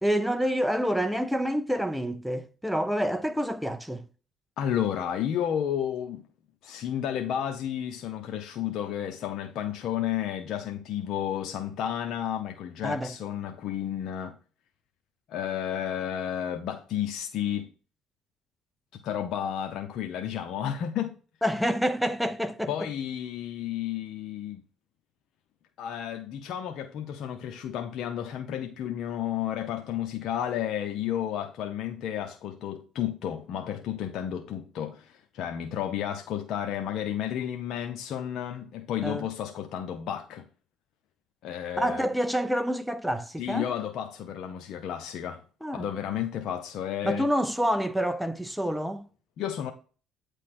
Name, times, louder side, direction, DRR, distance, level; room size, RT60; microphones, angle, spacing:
voice 1, 0.0-4.0 12.8-13.1 21.4-22.9 39.0-39.3 41.8-43.7 45.6-45.9 47.0-49.1, equal, ahead, 0.7 m, -28 dB
voice 2, 4.6-6.2 6.6-14.4 15.3-17.7 19.0-21.1 22.7-24.6 25.8-40.4 41.4-42.1 43.4-45.4 45.7-47.3 49.4-49.7, left 10 dB, 65° left, 0.7 m, -32 dB
8.5 x 3.3 x 5.8 m
cardioid pair, 90°, 0 cm